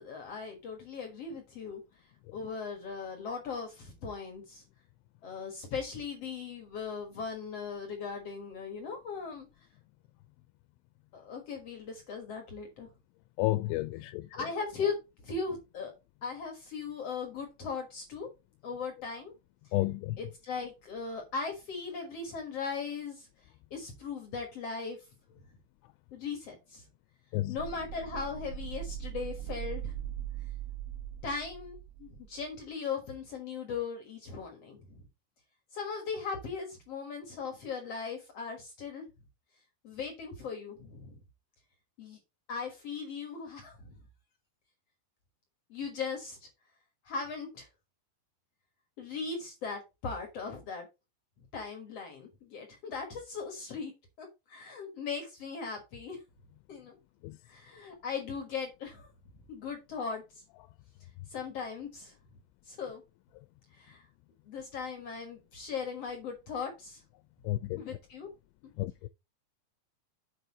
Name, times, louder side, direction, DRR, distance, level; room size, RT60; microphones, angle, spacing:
voice 1, 0.0-1.8 2.3-4.6 5.2-9.5 11.1-12.9 14.3-15.0 15.2-15.9 16.2-18.3 18.6-19.3 20.2-25.0 26.1-26.8 27.5-30.0 31.2-35.1 35.7-39.1 39.8-41.2 42.0-42.2 42.5-43.9 45.7-46.5 47.0-47.7 49.0-50.9 51.5-53.9 54.2-56.2 56.7-56.9 57.4-59.1 59.5-60.2 61.3-62.1 62.6-63.0 63.7-64.0 64.4-67.0 67.8-68.3, left 5 dB, 70° left, 1.4 m, -38 dB
voice 2, 13.4-14.3 19.7-20.2 27.3-27.6 57.2-57.4 67.4-67.8 68.8-69.1, left 17 dB, 85° left, 2.8 m, -31 dB
sound 1, 27.6-32.4, right 10 dB, 80° right, 3.1 m, -40 dB
7.9 x 5.2 x 4.2 m
omnidirectional pair, 5.1 m